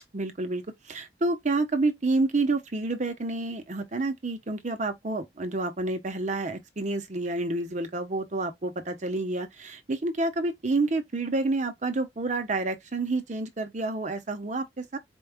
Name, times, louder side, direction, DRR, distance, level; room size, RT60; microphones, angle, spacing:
voice 1, 0.1-15.0, right 2 dB, 40° right, 0.8 m, -29 dB
4.5 x 2.3 x 3.5 m
head